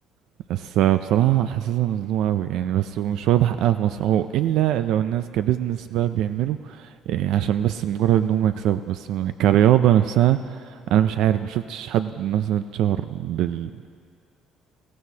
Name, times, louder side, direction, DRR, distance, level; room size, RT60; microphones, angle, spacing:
voice 1, 0.5-13.9, right 11 dB, 70° right, 10 dB, 0.3 m, -22 dB
20.5 x 16.0 x 2.8 m, 2.2 s
cardioid pair, 130°, 0 cm